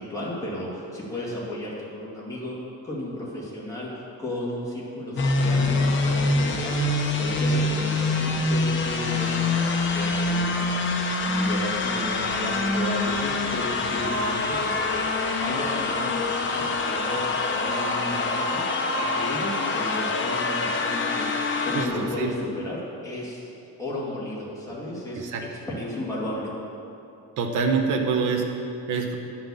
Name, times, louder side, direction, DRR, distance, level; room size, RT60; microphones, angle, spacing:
voice 1, 0.0-2.6 2.8-3.9 4.2-6.9 7.2-10.8 11.3-15.1 15.4-18.6 18.9-23.5 23.8-25.3 25.7-26.5, left 1 dB, 10° left, -6 dB, 2.2 m, -34 dB
sound 1, 5.2-21.9, left 2 dB, 40° left, 0.9 m, -25 dB
voice 2, 21.7-22.3 25.2-25.4 27.4-29.2, right 5 dB, 75° right, 3 dB, 1.1 m, -26 dB
10.0 x 5.9 x 7.0 m, 2.7 s
cardioid pair, 170°, 31 cm